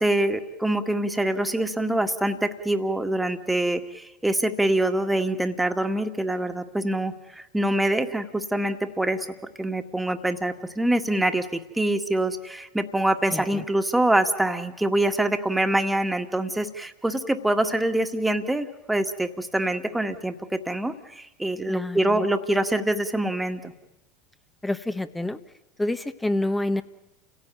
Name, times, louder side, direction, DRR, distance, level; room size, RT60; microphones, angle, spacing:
voice 1, 0.0-9.3 9.6-23.7, right 1 dB, 5° right, 7 dB, 1.9 m, -25 dB
voice 2, 13.3-13.6 21.7-22.2 24.6-25.4 25.8-26.8, left 1 dB, 10° left, 9 dB, 1.1 m, -28 dB
29.5 x 16.5 x 9.2 m, 0.99 s
figure-of-eight pair, 80°, 0 cm